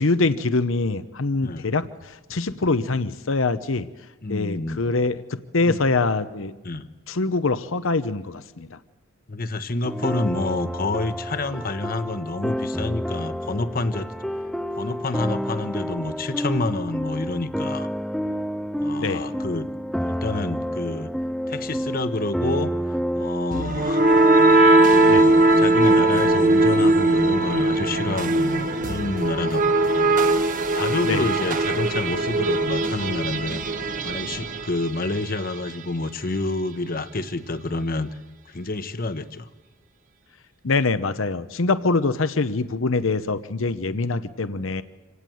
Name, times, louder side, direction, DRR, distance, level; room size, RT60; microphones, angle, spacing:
voice 1, 0.0-3.9 4.3-6.5 7.1-8.8 19.0-19.3 25.1-25.2 31.0-31.3 40.6-44.8, left 3 dB, 65° left, 12 dB, 0.8 m, -24 dB
voice 2, 4.2-4.8 5.6-5.9 6.6-6.9 9.3-14.1 14.8-17.9 18.8-19.7 20.0-21.1 21.5-24.0 24.9-30.3 30.7-33.6 34.0-38.1 38.5-39.5, left 2 dB, 45° left, 11 dB, 1.1 m, -28 dB
sound 1, 9.8-23.6, equal, ahead, 0.7 m, -29 dB
sound 2, 23.5-35.4, right 2 dB, 40° right, 1.2 m, -19 dB
26.5 x 18.0 x 7.8 m, 1.2 s
head